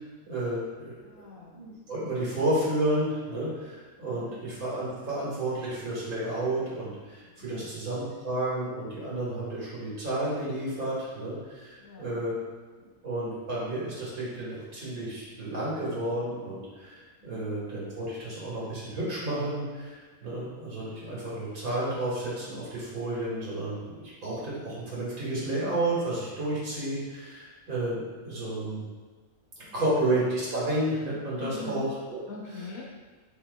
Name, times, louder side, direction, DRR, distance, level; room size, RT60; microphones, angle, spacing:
voice 1, 0.3-1.1 1.5-12.3 13.0-28.8 29.7-32.2, right 1 dB, 80° right, -7 dB, 2.1 m, -31 dB
voice 2, 1.0-1.6 4.1-4.5 7.2-7.8 11.8-12.2 17.2-17.6 29.6-30.1 31.4-31.9 32.3-32.8, left 4 dB, 80° left, -2 dB, 1.3 m, -43 dB
7.8 x 3.0 x 2.3 m, 1.4 s
omnidirectional pair, 1.5 m